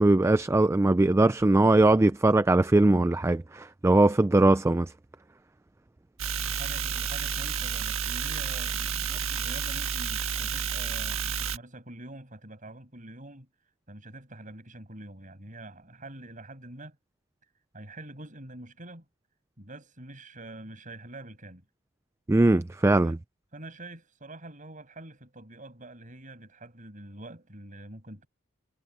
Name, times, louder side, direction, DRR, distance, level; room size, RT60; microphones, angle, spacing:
voice 1, 0.0-4.9 22.3-23.2, right 2 dB, 15° right, 0.3 m, -21 dB
sound 1, 6.2-11.6, right 7 dB, 75° right, 1.5 m, -31 dB
voice 2, 6.4-13.5 13.9-17.0 17.7-19.0 19.6-21.6 23.0-23.2 23.5-28.3, right 2 dB, 40° right, 7.5 m, -45 dB
head